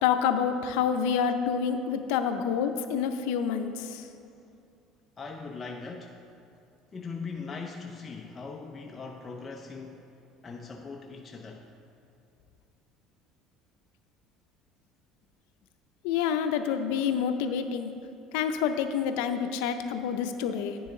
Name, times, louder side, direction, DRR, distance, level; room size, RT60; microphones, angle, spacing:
voice 1, 0.0-4.1 16.0-17.9 18.3-20.8, left 7 dB, 85° left, 8 dB, 0.5 m, -28 dB
voice 2, 5.2-6.2 6.9-10.1 10.4-11.7, left 4 dB, 25° left, 2 dB, 0.5 m, -40 dB
9.9 x 6.9 x 3.8 m, 2.5 s
cardioid pair, 125°, 0 cm